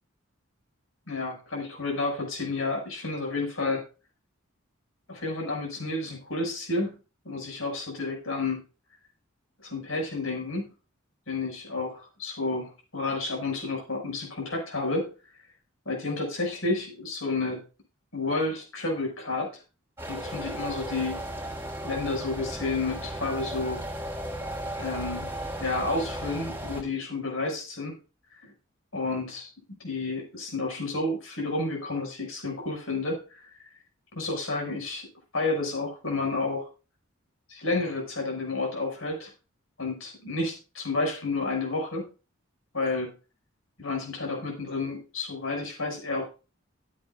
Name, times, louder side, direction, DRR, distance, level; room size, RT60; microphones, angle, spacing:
voice 1, 1.1-3.8 5.1-7.0 7.2-8.6 9.6-10.7 11.3-15.1 15.8-17.6 18.1-19.5 20.1-21.2 21.8-23.9 24.8-25.3 25.6-28.0 28.4-28.5 28.9-29.5 29.8-33.4 34.1-35.1 35.3-36.7 37.5-39.3 39.8-42.1 42.7-43.1 43.8-46.3, left 3 dB, 85° left, 1 dB, 6.3 m, -30 dB
sound 1, 20.0-26.8, right 1 dB, 10° right, 5.5 m, -35 dB
16.5 x 9.9 x 2.5 m, 0.32 s
head